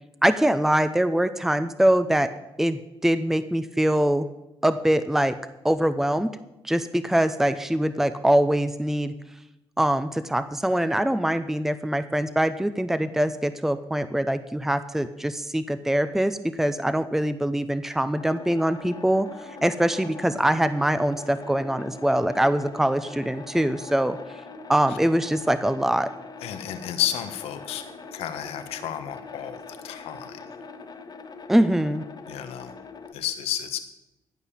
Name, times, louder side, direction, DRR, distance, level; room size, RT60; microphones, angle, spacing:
voice 1, 0.2-2.3 2.6-4.3 4.6-5.3 5.6-6.4 6.6-9.1 9.8-19.3 19.6-24.2 24.7-26.1 31.5-32.0, right 1 dB, 5° right, 12 dB, 0.7 m, -23 dB
sound 1, 18.2-33.1, left 4 dB, 45° left, 1.4 m, -42 dB
voice 2, 26.4-27.8 28.1-30.4 32.3-32.8 33.1-33.8, left 11 dB, 90° left, 8 dB, 1.2 m, -31 dB
15.5 x 5.5 x 8.3 m, 0.95 s
cardioid pair, 70°, 10 cm